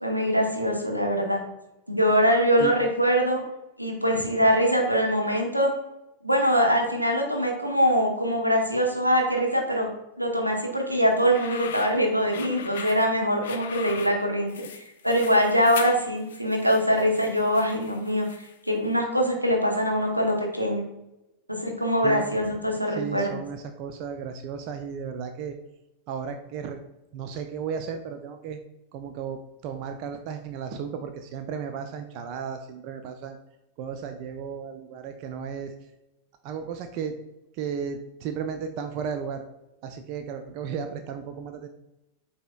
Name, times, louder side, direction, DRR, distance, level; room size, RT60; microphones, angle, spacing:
voice 1, 0.0-1.4 1.9-3.4 3.8-5.7 6.2-9.9 10.2-18.3 18.7-20.9 21.5-23.4, equal, 90° right, 1 dB, 0.8 m, -23 dB
voice 2, 4.1-4.5 22.0-22.3 22.9-25.6 26.1-26.8 27.1-28.6 28.9-33.4 33.8-35.7 36.4-37.2 37.5-39.4 39.8-41.7, right 7 dB, 45° right, 7 dB, 0.3 m, -34 dB
sound 1, 11.1-18.7, left 8 dB, 60° left, 0.4 m, -40 dB
7.7 x 2.8 x 2.3 m, 0.93 s
figure-of-eight pair, 90°, 0 cm